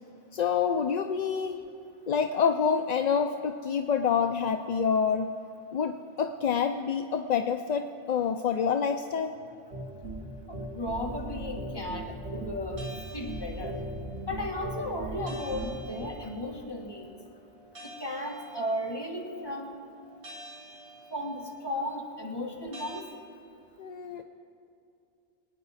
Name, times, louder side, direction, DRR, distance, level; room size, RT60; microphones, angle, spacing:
voice 1, 0.3-1.6 2.1-5.3 5.7-9.3 23.8-24.2, left 6 dB, 55° left, 7 dB, 0.5 m, -27 dB
sound 1, 9.7-16.1, right 1 dB, 80° right, 1.6 m, -38 dB
voice 2, 10.5-12.8 13.1-13.8 14.3-17.1 17.8-19.7 21.1-23.0, left 1 dB, 25° left, 0 dB, 1.5 m, -35 dB
sound 2, 12.8-23.0, equal, 65° right, 1.6 m, -50 dB
24.0 x 9.4 x 4.1 m, 2.6 s
omnidirectional pair, 1.1 m